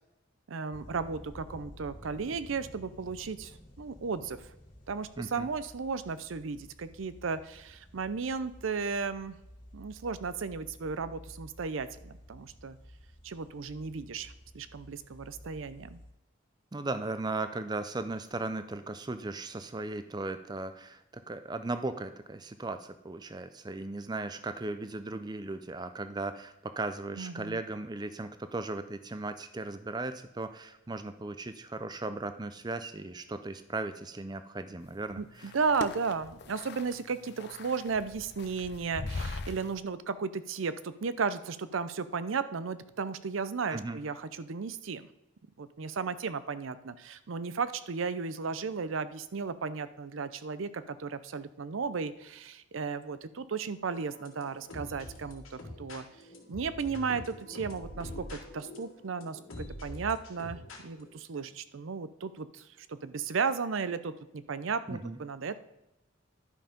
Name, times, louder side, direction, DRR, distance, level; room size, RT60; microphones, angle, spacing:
voice 1, 0.5-4.5 4.9-9.4 9.7-12.8 13.2-16.0 27.2-27.6 35.2-45.1 45.6-56.1 56.5-65.6, right 5 dB, 75° right, 14 dB, 0.5 m, -35 dB
sound 1, 0.7-16.1, equal, 35° left, 2.7 m, -52 dB
voice 2, 5.2-5.5 16.7-35.5 43.7-44.0 64.9-65.2, right 2 dB, 20° right, 11 dB, 0.5 m, -37 dB
sound 2, 34.8-39.8, left 3 dB, 55° left, 0.6 m, -41 dB
sound 3, 53.9-61.1, left 1 dB, 85° left, 1.8 m, -45 dB
11.0 x 5.6 x 5.2 m, 0.94 s
head